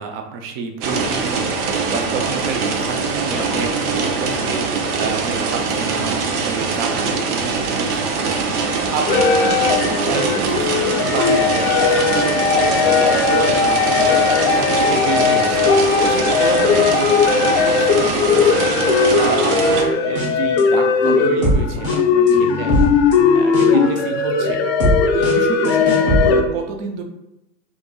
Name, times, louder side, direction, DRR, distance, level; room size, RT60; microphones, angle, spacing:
voice 1, 0.0-15.6 16.0-23.0 23.3-24.6 25.1-27.0, right 5 dB, 40° right, 4 dB, 0.5 m, -29 dB
sound 1, 0.8-19.8, right 4 dB, 80° right, 0.8 m, -22 dB
sound 2, 9.1-26.4, left 5 dB, 45° left, 0.4 m, -17 dB
sound 3, 19.9-20.6 21.0-26.5, right 1 dB, 15° right, 0.8 m, -22 dB
4.5 x 2.6 x 2.2 m, 0.90 s
supercardioid pair, 160°, 45 cm